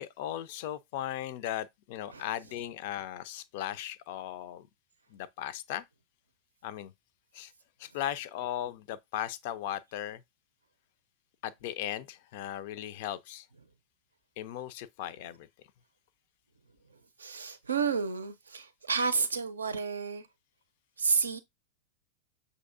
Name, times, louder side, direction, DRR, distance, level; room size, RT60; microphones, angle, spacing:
voice 1, 0.0-4.7 5.1-5.8 6.6-6.9 7.3-7.5 7.8-10.2 11.4-13.5 14.4-15.5, left 12 dB, 50° left, 0.4 m, -37 dB
voice 2, 17.2-20.3 21.0-21.4, right 5 dB, 75° right, 0.5 m, -30 dB
6.2 x 2.7 x 2.5 m
figure-of-eight pair, 90°, 0 cm